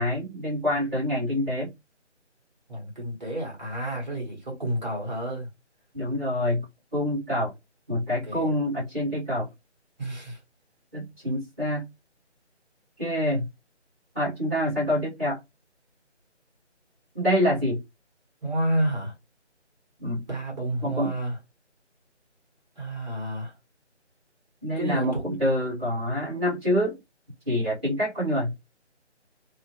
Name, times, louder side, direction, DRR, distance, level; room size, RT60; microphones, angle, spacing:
voice 1, 0.0-1.7 5.9-6.6 6.9-7.5 7.9-9.5 10.9-11.8 13.0-13.5 14.1-15.4 17.1-17.8 20.0-20.2 20.8-21.1 24.6-27.0 27.5-28.5, equal, 10° right, 0.9 m, -26 dB
voice 2, 2.7-5.5 8.2-8.5 10.0-10.4 18.4-19.1 20.3-21.4 22.8-23.5 24.8-25.2, right 1 dB, 40° right, 1.4 m, -30 dB
2.9 x 2.1 x 2.8 m
figure-of-eight pair, 160°, 36 cm